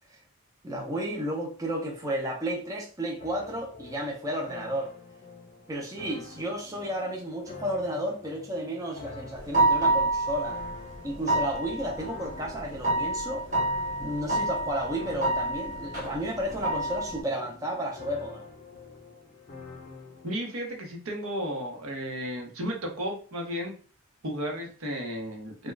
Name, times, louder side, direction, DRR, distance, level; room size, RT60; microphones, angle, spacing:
voice 1, 0.6-4.9 5.7-10.6 11.0-13.4 14.0-18.4 25.6-25.7, right 1 dB, 15° right, 0.4 m, -32 dB
sound 1, 3.2-20.3, left 3 dB, 40° left, 0.6 m, -47 dB
sound 2, 9.4-17.2, right 2 dB, 35° right, 1.1 m, -28 dB
voice 2, 20.2-23.7 24.2-25.7, equal, 75° right, 0.8 m, -33 dB
2.3 x 2.2 x 3.1 m
head